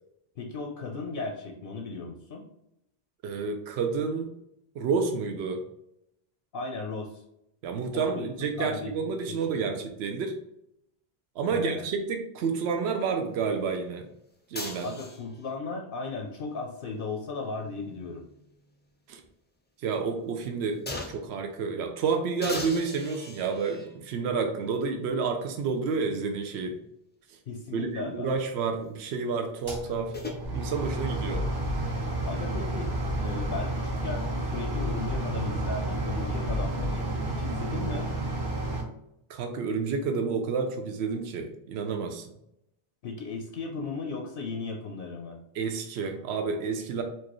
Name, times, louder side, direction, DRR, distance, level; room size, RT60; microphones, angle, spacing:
voice 1, 0.4-2.4 6.5-7.2 7.9-8.3 8.6-8.9 9.3-9.7 11.5-11.9 14.8-18.3 27.5-28.3 32.2-32.9 33.2-38.1 43.0-45.4, left 3 dB, 65° left, 2 dB, 0.7 m, -36 dB
voice 2, 3.2-4.3 4.8-5.6 7.6-10.4 11.4-14.1 14.5-14.9 19.1-19.2 19.8-20.8 21.1-26.8 27.7-30.1 30.5-31.5 39.3-42.3 45.5-47.0, right 5 dB, 85° right, 5 dB, 0.8 m, -30 dB
sound 1, 14.5-15.5 17.3-18.8 19.2-19.3 20.9-21.4 22.4-24.0 24.9-25.0 29.6-30.4, left 2 dB, 15° left, 0.3 m, -40 dB
sound 2, 29.6-38.8, right 2 dB, 25° right, 0.6 m, -31 dB
sound 3, 30.4-33.5 33.9-36.9, left 1 dB, 50° right, 1.7 m, -36 dB
4.5 x 2.5 x 3.0 m, 0.78 s
omnidirectional pair, 1.1 m